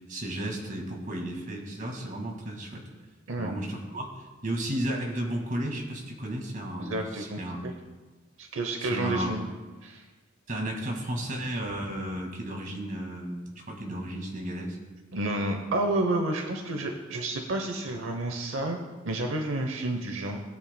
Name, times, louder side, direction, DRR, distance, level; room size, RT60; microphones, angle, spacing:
voice 1, 0.0-2.9 3.4-7.6 8.8-9.4 10.5-14.8, right 1 dB, 40° right, 0 dB, 2.0 m, -34 dB
voice 2, 3.3-3.6 6.8-7.7 8.4-9.4 9.8-10.0 15.1-18.8 19.0-20.4, right 2 dB, 80° right, 4 dB, 0.8 m, -30 dB
19.0 x 8.5 x 2.2 m, 1.3 s
head